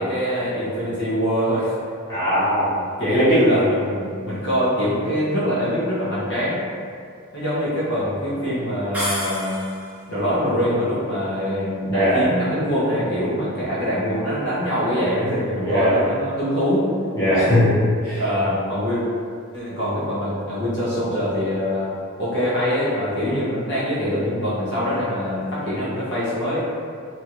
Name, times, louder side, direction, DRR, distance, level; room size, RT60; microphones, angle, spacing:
voice 1, 0.0-1.7 3.0-6.6 7.3-9.6 10.1-17.3 18.2-19.0 19.5-26.6, equal, 55° left, -9 dB, 0.8 m, -23 dB
voice 2, 2.1-2.7 3.1-3.4 11.9-12.2 15.6-16.0 17.1-17.7 18.0-18.2, equal, 15° left, -13 dB, 1.0 m, -19 dB
sound 1, 8.9-10.0, equal, 5° right, 0.6 m, -28 dB
2.9 x 2.5 x 2.9 m, 2.3 s
head